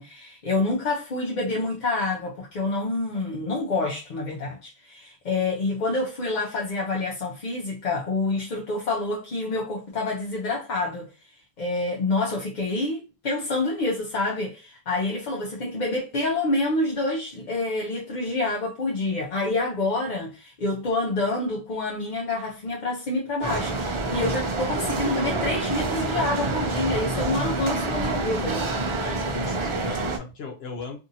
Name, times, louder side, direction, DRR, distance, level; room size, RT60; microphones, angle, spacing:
voice 1, 0.0-11.1 11.6-28.7, left 2 dB, 50° left, 0.7 m, -27 dB
sound 1, 23.4-30.2, right 2 dB, 45° right, 0.4 m, -27 dB
voice 2, 29.0-31.0, left 4 dB, 75° left, 0.9 m, -37 dB
2.6 x 2.5 x 2.6 m
omnidirectional pair, 1.1 m